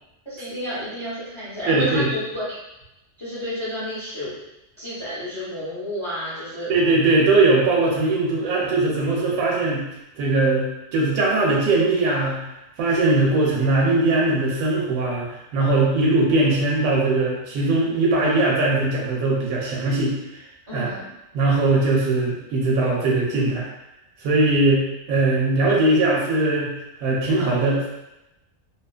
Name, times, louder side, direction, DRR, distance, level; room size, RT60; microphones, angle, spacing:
voice 1, 0.3-2.4 3.2-4.3 4.8-6.7 20.7-21.1, equal, 30° left, -11 dB, 0.7 m, -30 dB
voice 2, 1.7-2.1 6.7-9.8 10.2-12.4 12.8-20.2 20.7-20.9 21.3-23.7 24.2-26.7 27.0-27.8, right 2 dB, 90° right, -3 dB, 1.0 m, -20 dB
2.6 x 2.3 x 2.3 m, 0.91 s
omnidirectional pair, 1.4 m